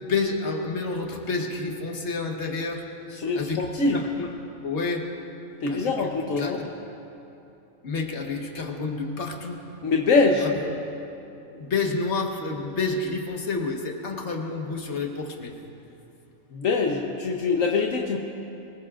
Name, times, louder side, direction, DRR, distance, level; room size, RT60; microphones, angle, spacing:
voice 1, 0.0-2.8 3.3-3.6 3.9-4.3 4.6-5.1 5.7-6.7 7.8-9.6 10.4-10.5 11.5-15.5, left 4 dB, 60° left, 2 dB, 1.7 m, -29 dB
voice 2, 3.1-4.0 5.6-6.6 9.8-10.5 16.5-18.2, left 4 dB, 75° left, 0 dB, 1.3 m, -23 dB
24.5 x 20.0 x 2.5 m, 2.8 s
omnidirectional pair, 1.4 m